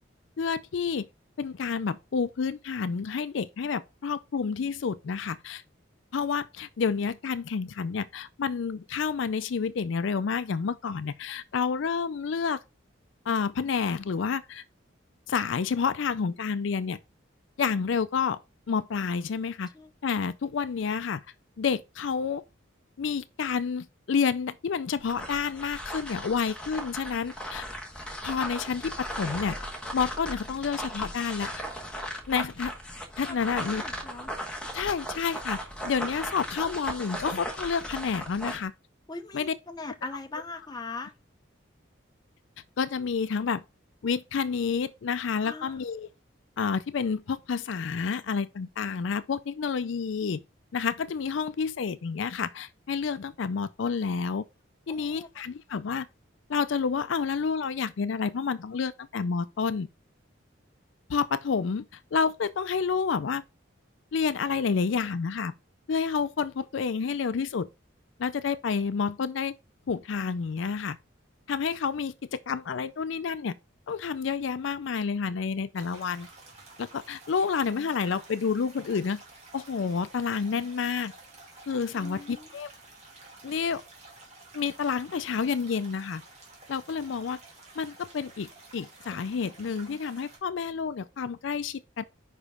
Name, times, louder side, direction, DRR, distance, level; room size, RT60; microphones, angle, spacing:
voice 1, 0.4-1.1 1.4-5.6 6.1-12.6 13.3-14.6 15.3-17.0 17.6-18.4 18.7-19.7 20.0-21.2 21.6-22.4 23.0-27.7 28.2-29.6 29.9-31.6 32.3-32.7 33.2-33.8 34.7-38.7 39.3-39.5 42.8-43.6 44.0-46.1 46.6-50.4 50.7-54.4 54.9-56.1 56.5-59.9 61.1-63.4 64.1-65.5 65.9-67.7 68.2-69.6 69.9-71.0 71.5-73.6 73.9-76.3 76.8-79.2 79.5-81.1 81.7-82.7 83.4-83.8 84.5-86.2 86.7-87.4 87.8-92.0, left 5 dB, 70° left, 0.4 m, -29 dB
sound 1, 25.0-38.7, equal, 5° left, 1.2 m, -37 dB
voice 2, 33.2-34.4 39.1-41.1 45.4-45.8 54.9-55.3 55.7-55.8 81.9-82.5, left 3 dB, 20° left, 0.7 m, -41 dB
sound 2, 75.7-90.4, right 2 dB, 35° right, 2.2 m, -51 dB
5.3 x 5.0 x 4.9 m
head